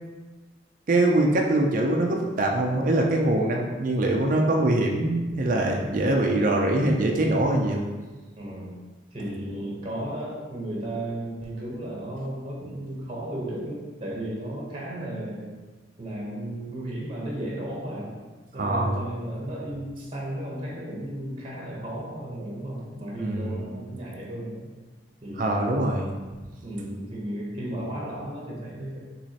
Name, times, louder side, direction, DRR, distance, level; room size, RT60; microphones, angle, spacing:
voice 1, 0.9-7.8 18.6-19.0 23.2-23.6 25.4-26.1, right 1 dB, 45° right, 0 dB, 0.4 m, -23 dB
voice 2, 8.4-8.8 9.1-15.5 16.0-18.1 18.5-24.7 25.2-25.9 26.6-29.0, right 1 dB, 30° right, -3 dB, 0.8 m, -34 dB
6.1 x 3.0 x 2.8 m, 1.3 s
head